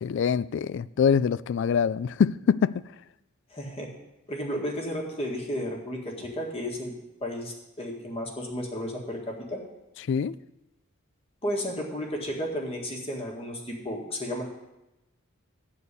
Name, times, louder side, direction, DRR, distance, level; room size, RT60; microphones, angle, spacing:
voice 1, 0.0-2.8 10.1-10.4, left 7 dB, 60° left, 0.3 m, -24 dB
voice 2, 3.5-3.9 4.3-6.9 7.2-9.6 11.4-14.5, equal, 30° left, 1.7 m, -33 dB
12.5 x 4.5 x 8.3 m
head